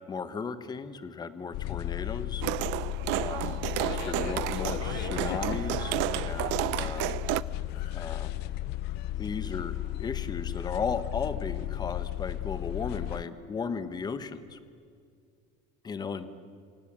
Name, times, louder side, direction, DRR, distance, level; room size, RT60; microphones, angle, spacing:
voice 1, 0.1-2.4 3.2-7.2 7.9-8.3 9.2-14.6 15.8-16.3, left 5 dB, 20° left, 12 dB, 1.4 m, -36 dB
sound 1, 1.5-13.2, left 14 dB, 55° left, 0.6 m, -34 dB
sound 2, 2.4-7.4, right 19 dB, 65° right, 0.7 m, -31 dB
sound 3, 4.1-10.2, left 4 dB, 75° left, 4.8 m, -54 dB
27.5 x 25.0 x 7.6 m, 2.3 s
cardioid pair, 150°, 20 cm